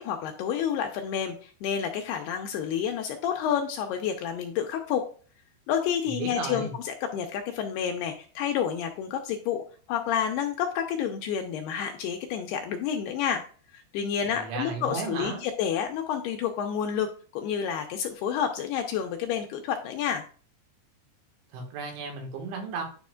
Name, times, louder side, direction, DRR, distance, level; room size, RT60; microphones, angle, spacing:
voice 1, 0.0-5.0 5.7-9.6 9.9-13.4 13.7-17.1 17.3-20.2, left 8 dB, 80° left, 4 dB, 2.5 m, -29 dB
voice 2, 6.1-6.7 14.3-15.4 21.5-22.8, right 4 dB, 90° right, 2 dB, 4.0 m, -34 dB
10.0 x 5.2 x 2.4 m, 0.40 s
omnidirectional pair, 5.2 m